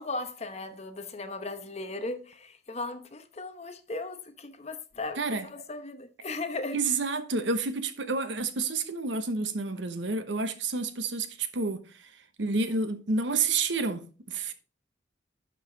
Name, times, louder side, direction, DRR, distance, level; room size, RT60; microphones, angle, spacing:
voice 1, 0.0-7.0, left 2 dB, 35° left, 0.9 m, -37 dB
voice 2, 6.7-12.1 12.4-14.5, right 3 dB, 85° right, 1.0 m, -29 dB
11.0 x 4.9 x 3.9 m
head